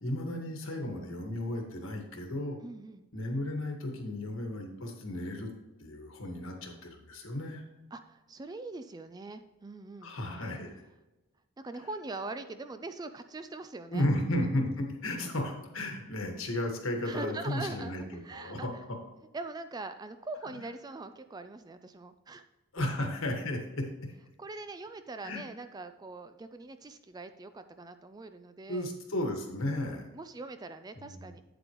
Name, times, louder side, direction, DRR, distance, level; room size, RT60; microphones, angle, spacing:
voice 1, 0.0-2.6 3.1-5.5 5.8-7.6 10.0-10.8 13.9-18.7 22.7-23.9 25.2-25.4 28.7-30.1 31.0-31.2, left 1 dB, 65° left, 2 dB, 1.6 m, -34 dB
voice 2, 2.6-3.1 7.9-10.2 11.6-14.1 17.0-18.8 19.3-22.4 24.4-28.9 29.8-31.4, right 3 dB, 20° right, 9 dB, 0.3 m, -42 dB
8.7 x 7.8 x 3.0 m, 1.1 s
head